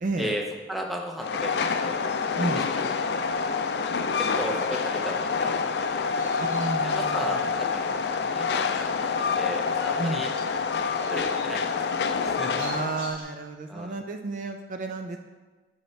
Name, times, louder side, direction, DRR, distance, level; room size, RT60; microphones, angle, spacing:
voice 1, 0.0-0.3 2.4-2.7 6.4-7.4 10.0-10.3 12.6-15.2, right 3 dB, 45° right, 6 dB, 0.3 m, -32 dB
voice 2, 0.7-2.0 2.4-3.4 4.2-6.3 6.8-7.9 8.3-9.1 9.3-10.3 11.1-12.6 13.7-13.9, equal, ahead, 0 dB, 0.6 m, -36 dB
Train, 1.2-13.1, left 5 dB, 70° left, 0.4 m, -27 dB
sound 1, 6.1-13.2, right 1 dB, 85° right, 1.8 m, -49 dB
7.7 x 5.7 x 3.2 m, 1.3 s
head